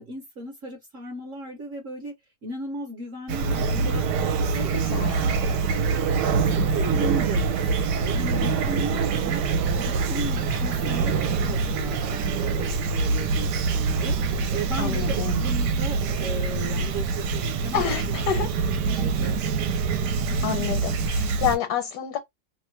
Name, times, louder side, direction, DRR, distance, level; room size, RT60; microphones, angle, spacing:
voice 1, 0.0-2.1 2.4-4.0 4.4-5.6 6.5-7.4 7.8-9.4 9.8-14.2 14.5-18.0 18.8-19.4, right 1 dB, 55° right, 1.0 m, -36 dB
Fowl / Chirp tweet, 3.3-21.6, right 5 dB, 80° right, 1.2 m, -25 dB
voice 2, 4.5-5.4 6.2-6.8 14.8-15.4 17.7-18.5 20.4-22.2, left 9 dB, 75° left, 1.3 m, -29 dB
2.9 x 2.1 x 3.1 m
omnidirectional pair, 1.9 m